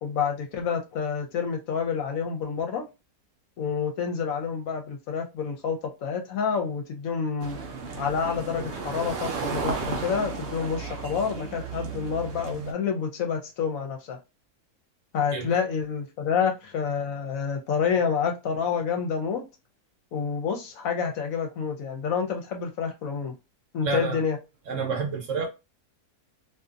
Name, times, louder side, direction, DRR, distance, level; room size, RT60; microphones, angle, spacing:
voice 1, 0.0-2.9 3.6-7.6 8.0-14.2 15.1-19.4 20.1-23.3 23.7-24.4, left 6 dB, 70° left, 0.9 m, -28 dB
sound 1, 7.4-12.7, right 5 dB, 80° right, 0.5 m, -34 dB
voice 2, 23.8-24.2 24.7-25.5, right 5 dB, 60° right, 0.9 m, -29 dB
2.6 x 2.4 x 2.4 m
omnidirectional pair, 1.6 m